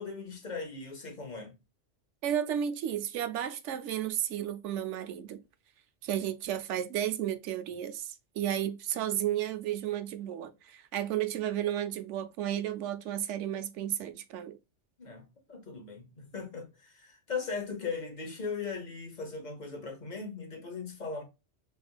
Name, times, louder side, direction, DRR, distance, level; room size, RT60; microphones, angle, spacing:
voice 1, 0.0-1.5 15.0-21.2, left 5 dB, 40° left, 0.9 m, -38 dB
voice 2, 2.2-5.4 6.0-14.6, right 10 dB, 85° right, 0.9 m, -33 dB
3.3 x 3.2 x 2.3 m
omnidirectional pair, 1.2 m